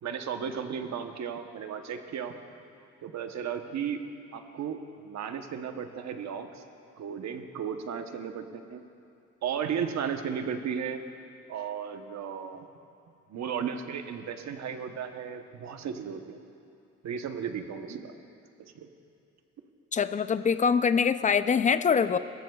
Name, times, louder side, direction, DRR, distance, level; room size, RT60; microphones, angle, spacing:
voice 1, 0.0-2.3 3.0-4.0 4.3-6.6 7.0-8.8 9.4-11.0 11.5-12.7 13.3-16.4 17.0-18.1 18.6-18.9, right 7 dB, 65° right, 7 dB, 1.0 m, -35 dB
voice 2, 19.9-22.2, left 6 dB, 25° left, 12 dB, 0.4 m, -24 dB
20.5 x 14.5 x 2.4 m, 2.6 s
cardioid pair, 90°, 30 cm